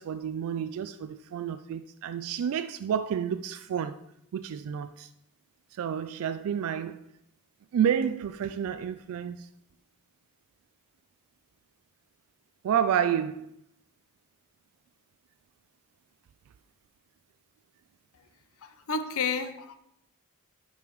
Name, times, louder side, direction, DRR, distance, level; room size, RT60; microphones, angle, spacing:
voice 1, 0.0-4.0 4.3-5.1 5.7-7.0 7.7-9.5 12.6-13.5, right 8 dB, 65° right, 0.3 m, -30 dB
voice 2, 18.6-19.8, left 5 dB, 65° left, 0.6 m, -31 dB
10.5 x 5.4 x 3.1 m
head